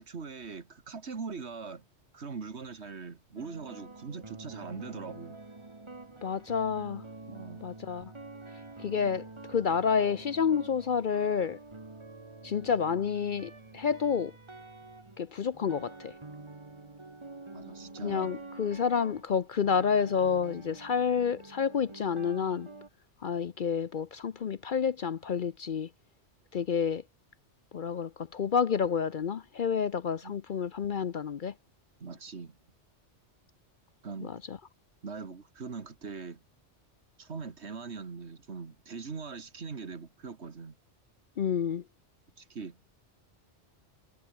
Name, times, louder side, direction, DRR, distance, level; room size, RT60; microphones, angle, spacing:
voice 1, 0.0-1.8 2.1-5.4 7.3-7.7 17.5-18.3 30.2-30.3 32.0-32.6 34.0-34.3 35.0-36.4 37.2-40.8 42.4-42.8, right 5 dB, 70° right, 2.1 m, -41 dB
sound 1, 3.3-22.9, right 3 dB, 25° right, 1.5 m, -47 dB
voice 2, 6.2-7.0 7.6-8.1 8.8-11.6 12.4-14.3 15.2-16.1 18.0-22.7 23.2-25.9 26.5-27.0 27.7-31.5 34.2-34.6 41.4-41.8, left 6 dB, 50° left, 0.7 m, -29 dB
omnidirectional pair, 1.2 m